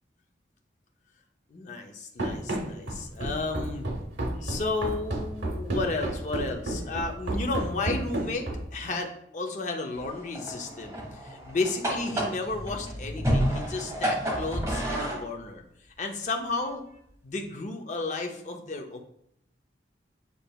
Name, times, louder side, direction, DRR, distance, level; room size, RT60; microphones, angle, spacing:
voice 1, 1.5-3.9 4.4-15.6 16.0-16.9 17.2-19.0, left 3 dB, 40° left, 3 dB, 0.5 m, -33 dB
Run, 2.2-8.8, right 1 dB, 85° right, 0.9 m, -31 dB
sound 1, 9.9-15.2, equal, 20° right, 1.1 m, -30 dB
6.7 x 3.2 x 2.3 m, 0.74 s
head